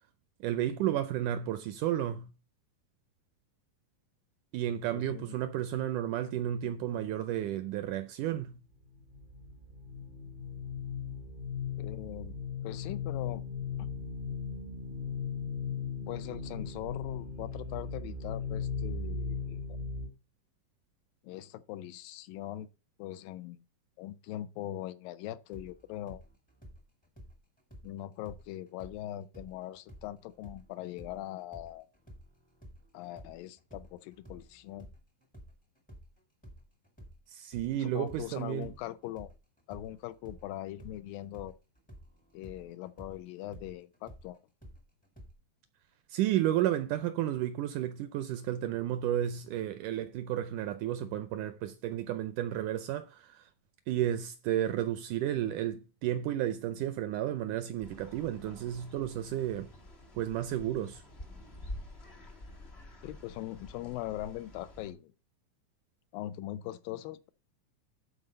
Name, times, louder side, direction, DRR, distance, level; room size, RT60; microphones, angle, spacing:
voice 1, 0.4-2.3 4.5-8.6 37.3-38.7 46.1-53.5 53.9-59.7 60.2-61.0, right 12 dB, 80° right, 1.9 m, -32 dB
voice 2, 4.9-5.3 11.8-12.4 12.6-13.4 13.8-13.9 16.1-19.8 21.2-22.7 23.0-23.6 24.0-26.2 27.8-31.9 32.9-34.9 37.8-39.3 39.7-41.5 42.3-44.4 63.0-65.1 66.1-67.3, left 14 dB, 80° left, 2.3 m, -41 dB
sound 1, 8.8-20.1, left 5 dB, 50° right, 0.7 m, -37 dB
sound 2, 25.5-29.0 29.3-37.2 37.5-45.3, equal, 5° left, 0.6 m, -52 dB
sound 3, 57.8-64.9, left 1 dB, 55° left, 0.7 m, -48 dB
12.0 x 4.2 x 5.2 m
omnidirectional pair, 4.1 m